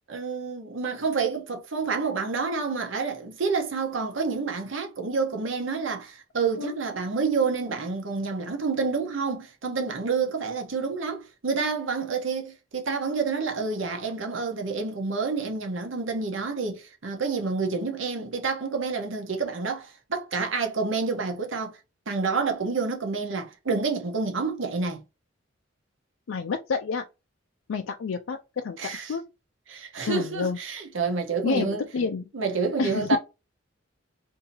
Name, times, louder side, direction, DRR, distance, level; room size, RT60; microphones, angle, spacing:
voice 1, 0.1-21.8 22.1-25.0 28.8-29.2 29.7-31.8 32.3-33.2, right 4 dB, 75° right, 0.9 m, -28 dB
voice 2, 26.3-27.0 27.7-28.8 29.1-29.2 30.0-30.6 31.4-32.3 32.8-33.1, left 5 dB, 85° left, 0.4 m, -29 dB
2.8 x 2.7 x 3.8 m
head